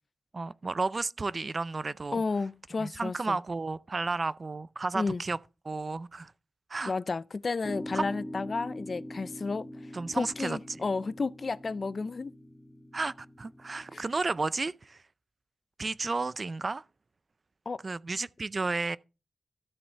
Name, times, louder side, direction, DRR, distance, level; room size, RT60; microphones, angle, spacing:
voice 1, 0.3-2.2 2.8-5.4 5.7-6.3 6.7-6.9 7.9-8.0 9.9-10.6 12.9-15.0 15.8-16.8 17.8-19.0, right 3 dB, 40° right, 0.4 m, -32 dB
voice 2, 2.1-3.4 4.9-5.2 6.9-12.3 13.9-14.0 17.7-17.8, left 4 dB, 45° left, 0.4 m, -32 dB
sound 1, 7.6-14.1, left 1 dB, 5° right, 0.9 m, -43 dB
13.0 x 7.1 x 3.3 m
wide cardioid pair, 115°, 0 cm